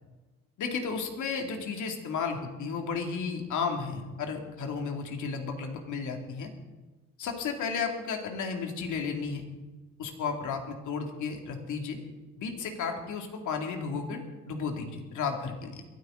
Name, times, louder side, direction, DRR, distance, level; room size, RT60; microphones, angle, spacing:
voice 1, 0.6-6.5 7.2-9.4 10.0-12.0 12.4-15.9, left 5 dB, 80° left, 3 dB, 2.5 m, -33 dB
22.0 x 13.5 x 3.9 m, 1.2 s
cardioid pair, 90°, 30 cm